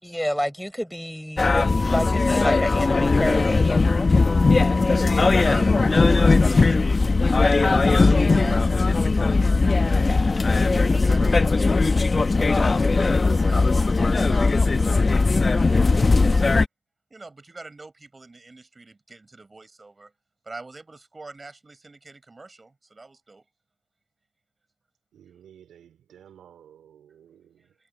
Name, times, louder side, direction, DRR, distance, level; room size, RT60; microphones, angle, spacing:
voice 1, 0.0-3.7, equal, ahead, 5.1 m, -29 dB
sound 1, 1.4-16.7, left 3 dB, 30° left, 1.0 m, -19 dB
voice 2, 5.4-7.1 7.6-8.8 9.6-10.1 10.4-11.9 12.3-14.7 15.5-16.5 17.1-20.1 20.4-23.4, right 3 dB, 25° right, 5.7 m, -42 dB
voice 3, 25.1-27.7, right 9 dB, 80° right, 4.4 m, -52 dB
cardioid pair, 85°, 0 cm